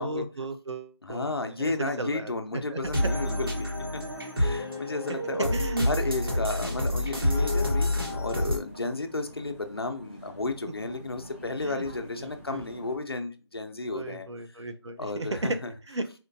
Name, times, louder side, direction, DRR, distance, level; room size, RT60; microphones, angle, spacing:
voice 1, 0.0-1.3 1.6-2.8 5.1-5.2 5.5-5.9 11.6-11.9 12.2-12.7 13.9-15.6 15.9-16.0, right 2 dB, 75° right, 9 dB, 0.6 m, -34 dB
voice 2, 1.0-4.0 4.4-5.5 5.8-14.6 15.0-15.7, left 3 dB, 55° left, 5 dB, 0.6 m, -33 dB
sound 1, 2.8-8.6, left 1 dB, 55° right, 1.1 m, -28 dB
sound 2, 6.3-13.0, equal, 20° right, 0.7 m, -47 dB
4.2 x 2.3 x 2.6 m, 0.34 s
figure-of-eight pair, 180°, 15 cm